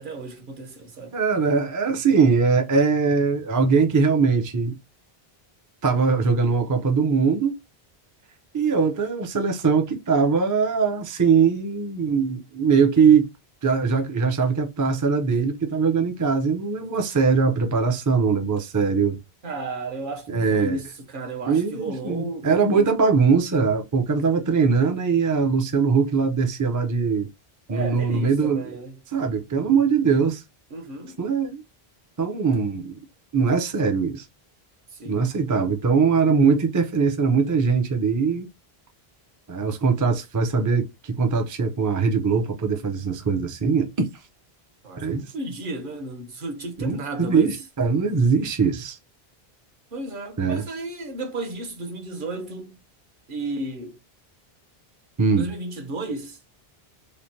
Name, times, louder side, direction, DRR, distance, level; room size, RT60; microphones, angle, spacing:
voice 1, 0.0-1.2 19.4-22.9 27.7-29.0 30.7-31.2 34.9-35.2 44.8-47.6 49.9-52.7 53.3-54.0 55.3-56.4, right 2 dB, 55° right, 0.9 m, -33 dB
voice 2, 1.1-4.8 5.8-7.6 8.5-13.3 13.6-19.2 20.3-20.8 21.5-27.3 27.7-28.7 29.1-30.4 31.2-31.6 32.2-33.0 33.3-34.3 35.1-38.5 39.5-44.1 45.0-45.3 46.8-49.0 50.4-50.6 55.2-55.5, right 5 dB, 30° right, 0.3 m, -21 dB
3.1 x 2.1 x 2.6 m
omnidirectional pair, 1.0 m